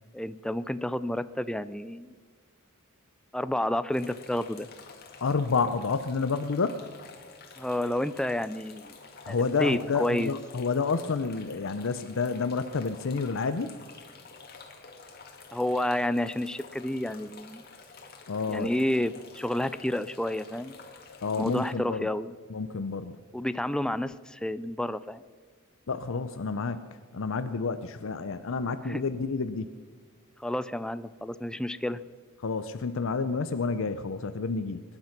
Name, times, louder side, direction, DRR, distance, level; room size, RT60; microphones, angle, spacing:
voice 1, 0.1-2.1 3.3-4.7 7.6-8.9 9.3-10.3 15.5-17.6 18.5-20.7 21.3-22.4 23.3-25.2 28.8-29.0 30.4-32.0, left 1 dB, 5° left, 14 dB, 0.4 m, -30 dB
sound 1, 3.9-21.7, left 4 dB, 45° left, 2.0 m, -49 dB
voice 2, 5.2-6.8 9.2-13.7 18.3-18.7 21.2-22.1 22.5-23.1 25.9-26.9 27.1-29.7 32.4-34.8, left 4 dB, 65° left, 11 dB, 0.6 m, -29 dB
23.0 x 10.5 x 5.9 m, 1.5 s
head